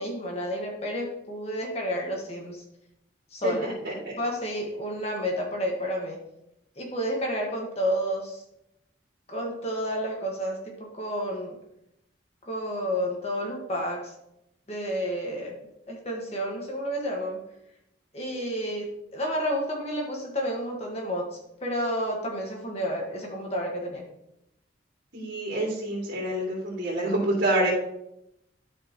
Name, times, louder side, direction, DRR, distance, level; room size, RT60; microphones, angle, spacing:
voice 1, 0.0-2.6 3.3-3.7 4.2-6.2 6.8-8.4 9.3-11.6 12.4-14.1 14.7-15.5 15.9-17.4 18.1-24.1, equal, 35° left, 0 dB, 1.5 m, -30 dB
voice 2, 3.4-3.9 25.1-27.7, right 1 dB, 70° right, -9 dB, 3.0 m, -27 dB
12.5 x 5.1 x 3.0 m, 0.82 s
head